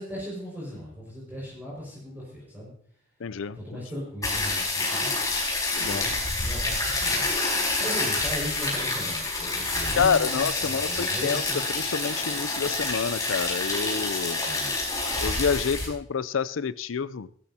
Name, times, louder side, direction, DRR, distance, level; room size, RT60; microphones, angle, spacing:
voice 1, 0.0-2.7 3.5-7.3 7.6-11.6 14.4-14.8, equal, 10° right, -6 dB, 5.6 m, -38 dB
voice 2, 3.2-3.6 5.7-6.1 10.0-11.4 11.7-14.4 15.2-17.3, left 6 dB, 85° left, 17 dB, 0.5 m, -28 dB
sound 1, 4.2-15.9, left 2 dB, 20° left, 5.0 m, -28 dB
18.0 x 13.0 x 2.9 m, 0.63 s
head